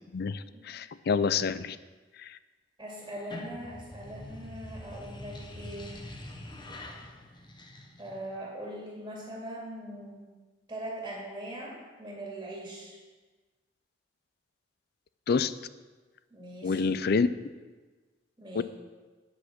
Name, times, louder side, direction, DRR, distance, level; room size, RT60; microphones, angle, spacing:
voice 1, 0.1-1.8 2.2-2.3 15.3-15.5 16.6-17.3 18.5-18.6, left 5 dB, 60° left, 15 dB, 0.4 m, -27 dB
voice 2, 2.8-6.1 8.0-10.3 10.7-13.0 16.3-17.0 18.4-18.6, right 1 dB, 20° right, -4 dB, 2.4 m, -41 dB
sound 1, 3.1-8.4, left 1 dB, 25° left, 1.1 m, -44 dB
8.6 x 7.7 x 6.0 m, 1.3 s
head